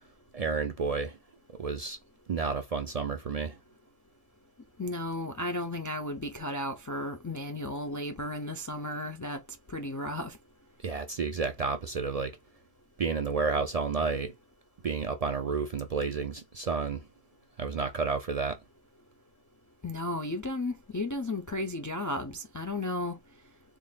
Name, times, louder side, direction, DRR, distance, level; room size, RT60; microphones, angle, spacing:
voice 1, 0.3-1.2 1.6-2.0 2.3-3.6 10.8-12.4 13.0-14.3 14.8-17.1 17.6-18.6, right 4 dB, 50° right, 0.4 m, -31 dB
voice 2, 4.8-9.4 9.7-10.4 19.8-23.2, left 1 dB, 30° left, 0.3 m, -34 dB
3.8 x 3.6 x 2.2 m
omnidirectional pair, 1.1 m